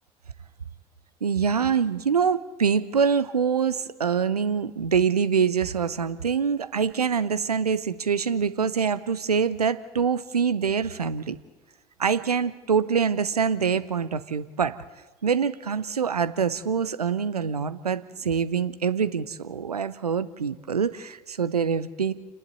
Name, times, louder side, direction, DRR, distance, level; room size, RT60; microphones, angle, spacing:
voice 1, 1.2-11.4 12.0-14.8 15.2-22.1, right 6 dB, 90° right, 14 dB, 0.7 m, -25 dB
29.5 x 10.5 x 8.2 m, 1.2 s
figure-of-eight pair, 55°, 19 cm